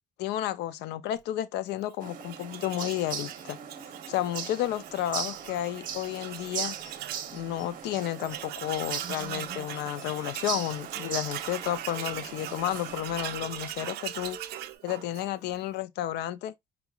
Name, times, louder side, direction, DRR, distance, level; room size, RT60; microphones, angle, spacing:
voice 1, 0.2-3.6 4.1-6.8 7.3-14.4 14.8-16.5, left 13 dB, 80° left, 0.5 m, -32 dB
sound 1, 2.0-13.0, right 8 dB, 55° right, 0.9 m, -39 dB
Tools, 2.2-7.3 7.7-7.8 8.0-15.6, right 13 dB, 70° right, 0.5 m, -41 dB
sound 2, 4.7-14.8, right 5 dB, 15° right, 1.0 m, -51 dB
4.7 x 3.0 x 2.3 m
cardioid pair, 110°, 17 cm